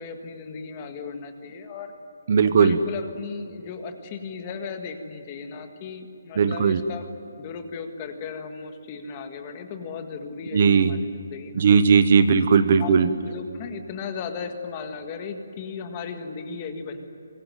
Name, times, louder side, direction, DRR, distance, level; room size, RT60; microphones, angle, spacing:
voice 1, 0.0-1.9 2.4-7.1 7.4-11.6 12.8-17.0, left 5 dB, 20° left, 6 dB, 1.7 m, -36 dB
voice 2, 2.3-2.8 6.4-6.8 10.5-10.9 11.6-13.1, right 6 dB, 35° right, 11 dB, 1.0 m, -18 dB
25.0 x 22.5 x 9.2 m, 2.5 s
hypercardioid pair, 180°, 0 cm